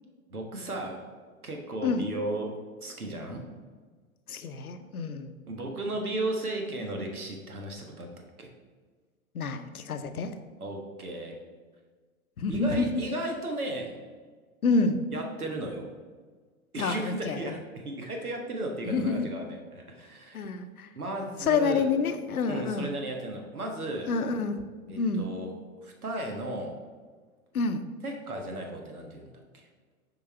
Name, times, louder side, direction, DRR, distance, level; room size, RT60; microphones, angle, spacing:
voice 1, 0.3-1.1 1.4-3.5 5.5-8.1 8.4-8.5 10.6-11.4 12.5-14.0 15.1-15.9 16.7-20.5 20.9-21.9 22.4-24.1 24.9-25.5 25.8-26.8 28.0-29.7, right 1 dB, 85° right, 2 dB, 1.4 m, -35 dB
voice 2, 4.3-5.3 9.3-10.3 12.4-12.8 14.6-15.0 16.8-17.5 18.8-19.3 20.3-20.9 21.4-22.9 24.1-25.3 27.5-27.9, left 4 dB, 80° left, 9 dB, 0.8 m, -28 dB
6.8 x 4.7 x 4.4 m, 1.5 s
figure-of-eight pair, 110°, 43 cm